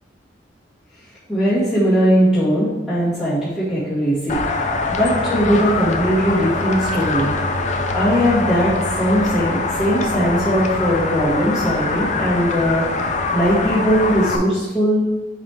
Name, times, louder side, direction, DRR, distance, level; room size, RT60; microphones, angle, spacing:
voice 1, 1.3-7.3 7.9-15.1, equal, ahead, -13 dB, 1.8 m, -19 dB
sound 1, 4.3-14.4, left 3 dB, 40° left, 0.6 m, -23 dB
9.7 x 3.4 x 3.4 m, 1.1 s
head